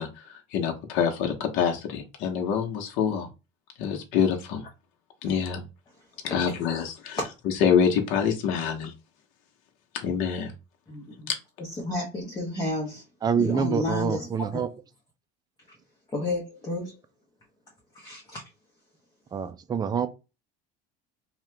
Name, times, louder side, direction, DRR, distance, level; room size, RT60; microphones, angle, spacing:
voice 1, 0.0-3.3 3.8-4.6 5.2-5.6 6.2-7.2 7.4-8.9 9.9-10.5, left 7 dB, 70° left, 0.9 m, -26 dB
voice 2, 10.9-11.3 11.6-13.0 13.4-14.6 16.1-17.0 17.9-18.4, left 2 dB, 20° left, 0.9 m, -32 dB
voice 3, 13.2-14.7 19.3-20.1, right 7 dB, 20° right, 0.4 m, -26 dB
2.8 x 2.4 x 3.2 m
supercardioid pair, 120°, 21 cm